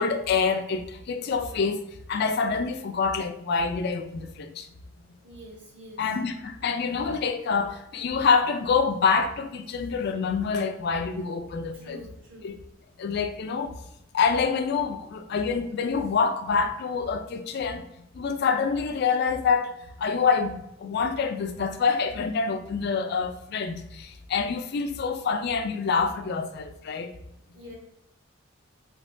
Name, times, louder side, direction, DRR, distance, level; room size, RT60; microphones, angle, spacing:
voice 1, 0.0-1.8 2.1-4.7 6.0-12.0 12.4-12.6 13.0-13.7 14.1-17.8 18.1-27.1, left 5 dB, 50° left, 0.3 m, -26 dB
voice 2, 5.2-6.1 11.7-12.5 27.5-27.8, equal, 60° right, 1.4 m, -46 dB
3.5 x 2.9 x 2.5 m
head